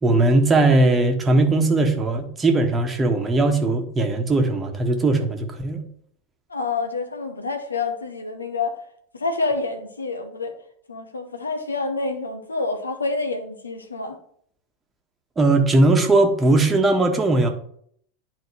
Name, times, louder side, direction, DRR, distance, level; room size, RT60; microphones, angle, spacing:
voice 1, 0.0-5.8 15.4-17.5, right 2 dB, 20° right, 1.3 m, -19 dB
voice 2, 6.5-8.8 9.1-10.5 10.9-14.2, left 3 dB, 80° left, 1.0 m, -27 dB
10.5 x 4.3 x 3.2 m
figure-of-eight pair, 85°, 0 cm